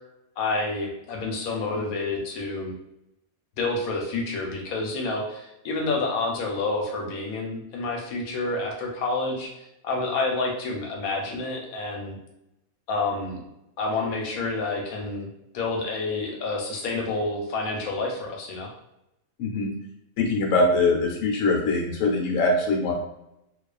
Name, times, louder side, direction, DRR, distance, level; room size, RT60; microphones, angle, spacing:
voice 1, 0.4-2.7 3.6-9.5 9.8-12.2 12.9-13.4 13.8-18.7, left 3 dB, 85° left, 0 dB, 1.1 m, -29 dB
voice 2, 20.2-22.9, left 2 dB, 70° left, -1 dB, 1.0 m, -22 dB
2.3 x 2.3 x 2.3 m, 0.86 s
omnidirectional pair, 1.5 m